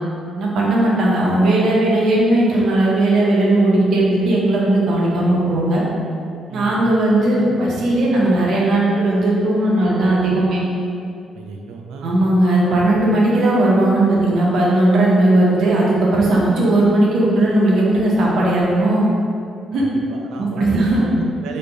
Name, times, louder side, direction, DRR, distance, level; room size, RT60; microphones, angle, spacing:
voice 1, 0.4-5.8 6.5-10.6 12.0-19.0 19.7-19.8 20.4-21.1, right 1 dB, 70° right, -4 dB, 0.7 m, -17 dB
voice 2, 6.5-6.8 11.3-12.2 19.8-21.6, right 4 dB, 90° right, 2 dB, 0.3 m, -32 dB
3.3 x 2.2 x 3.9 m, 2.4 s
cardioid pair, 90°, 0 cm